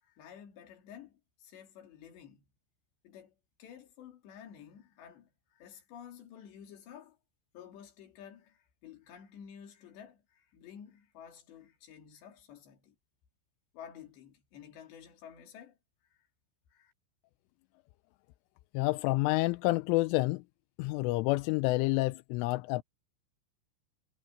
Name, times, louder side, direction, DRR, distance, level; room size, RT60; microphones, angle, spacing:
voice 1, 0.0-2.5 3.0-7.2 7.5-13.0 13.7-15.8 16.1-16.3 16.7-16.9, left 8 dB, 65° left, 4.9 m, -52 dB
voice 2, 18.7-20.4 20.8-22.8, left 21 dB, 85° left, 3.1 m, -28 dB
omnidirectional pair, 5.7 m